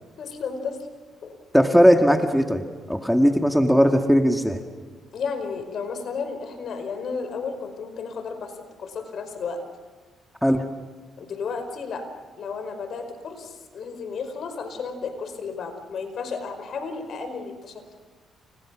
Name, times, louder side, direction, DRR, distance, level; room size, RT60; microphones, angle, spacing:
voice 1, 0.2-0.9 1.2-1.3 5.1-9.6 11.2-12.1 12.4-17.8, left 5 dB, 60° left, 8 dB, 5.0 m, -33 dB
voice 2, 1.5-4.6 10.4-10.6, equal, ahead, 5 dB, 2.0 m, -18 dB
30.0 x 30.0 x 6.3 m, 1.4 s
cardioid pair, 90°, 0 cm